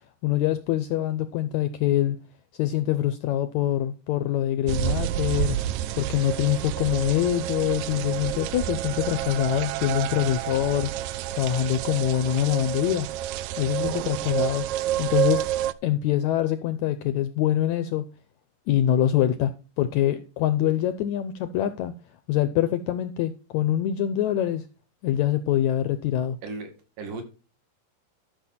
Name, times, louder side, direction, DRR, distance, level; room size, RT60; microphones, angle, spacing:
voice 1, 0.2-2.2 2.5-5.6 6.0-10.9 11.3-13.1 13.6-14.7 15.0-15.5 15.8-18.0 18.7-21.9 22.3-24.6 25.0-26.4, left 12 dB, 80° left, 1.7 m, -24 dB
sound 1, 4.7-15.7, right 13 dB, 85° right, 1.6 m, -29 dB
voice 2, 26.4-27.2, right 3 dB, 70° right, 3.8 m, -36 dB
12.5 x 6.3 x 4.2 m
omnidirectional pair, 4.0 m